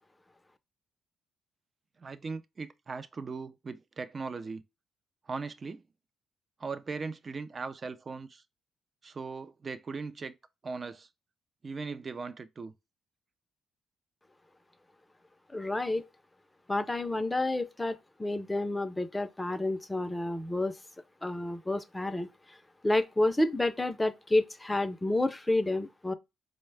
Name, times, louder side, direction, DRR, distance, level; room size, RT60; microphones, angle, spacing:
voice 1, 2.0-4.6 5.3-5.8 6.6-8.4 9.0-10.3 10.6-11.1 11.6-12.7, right 4 dB, 35° right, 0.4 m, -39 dB
voice 2, 15.5-16.0 16.7-20.7 21.2-22.3 22.8-26.1, left 2 dB, 15° left, 0.5 m, -29 dB
4.6 x 2.1 x 3.3 m
cardioid pair, 90°, 0 cm